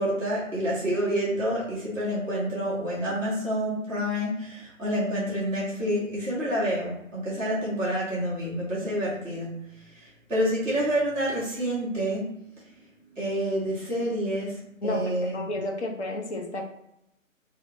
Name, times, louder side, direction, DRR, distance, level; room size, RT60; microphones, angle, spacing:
voice 1, 0.0-9.5 9.9-12.4 13.1-15.5, equal, 5° right, -6 dB, 0.8 m, -28 dB
voice 2, 14.8-16.6, left 1 dB, 55° left, 2 dB, 0.6 m, -31 dB
2.5 x 2.0 x 3.1 m, 0.80 s
figure-of-eight pair, 145°, 41 cm